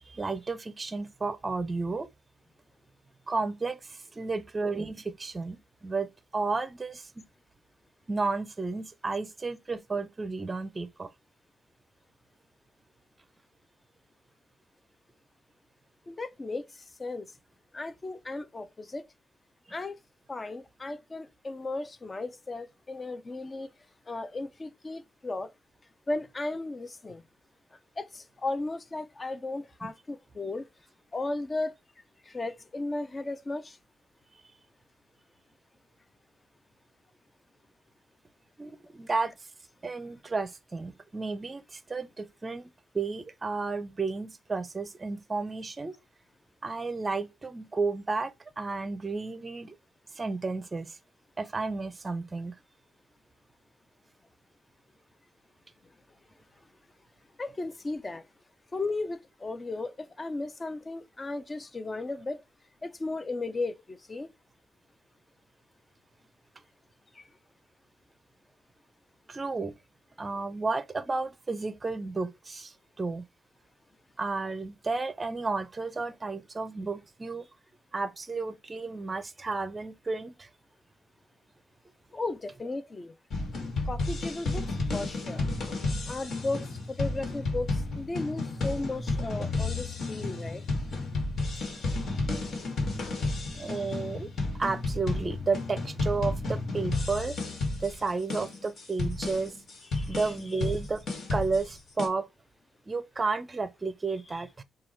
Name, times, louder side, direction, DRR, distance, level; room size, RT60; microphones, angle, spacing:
voice 1, 0.1-2.1 3.3-7.2 8.1-11.1 29.8-29.9 38.6-39.3 39.8-45.9 46.6-49.8 50.1-51.0 51.4-52.5 69.3-69.7 70.2-73.2 74.2-77.5 77.9-80.5 93.5-94.3 94.6-97.4 97.8-99.5 100.1-101.0 101.3-102.3 102.9-104.6, right 3 dB, 25° right, 0.5 m, -32 dB
voice 2, 16.1-17.3 17.7-19.1 19.7-20.0 20.3-23.7 24.1-25.5 26.1-27.2 28.0-30.7 31.1-31.8 32.3-33.8 57.4-58.2 58.7-62.4 62.8-64.3 67.1-67.3 82.1-83.1 83.9-85.5 86.1-90.6 93.6-93.9 99.9-100.3, left 2 dB, 25° left, 0.5 m, -35 dB
sound 1, 83.3-102.1, left 2 dB, 60° left, 1.6 m, -32 dB
4.6 x 2.3 x 4.3 m
cardioid pair, 95°, 0 cm